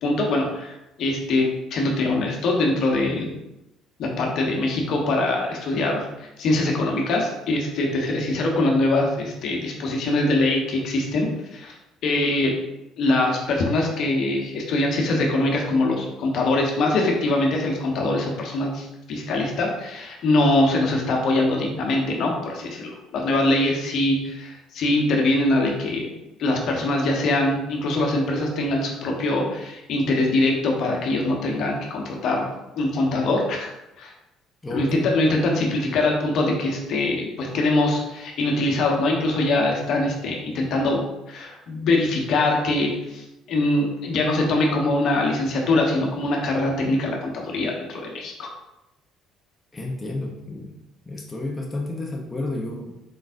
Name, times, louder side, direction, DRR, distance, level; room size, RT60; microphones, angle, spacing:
voice 1, 0.0-3.3 4.0-11.7 12.0-12.5 13.0-26.1 26.4-32.5 32.8-34.1 34.7-43.2 43.5-48.5, left 2 dB, 65° left, 0 dB, 1.0 m, -23 dB
voice 2, 34.6-35.1 49.7-50.8 51.1-52.9, left 2 dB, 20° left, 0 dB, 0.8 m, -31 dB
4.6 x 3.9 x 2.6 m, 0.93 s
hypercardioid pair, 65°, 0 cm